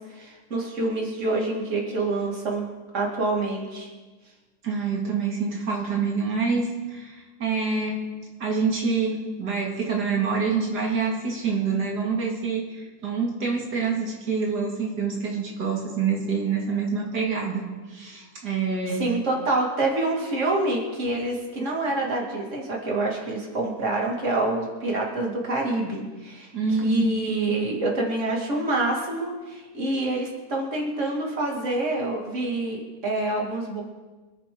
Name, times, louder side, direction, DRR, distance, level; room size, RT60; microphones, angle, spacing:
voice 1, 0.1-2.7 2.9-3.9 19.0-26.5 26.8-33.8, right 2 dB, 50° right, -2 dB, 2.9 m, -26 dB
voice 2, 4.6-8.0 8.4-19.0 26.5-27.2, right 5 dB, 90° right, -2 dB, 2.8 m, -26 dB
26.0 x 9.6 x 3.9 m, 1.3 s
omnidirectional pair, 1.7 m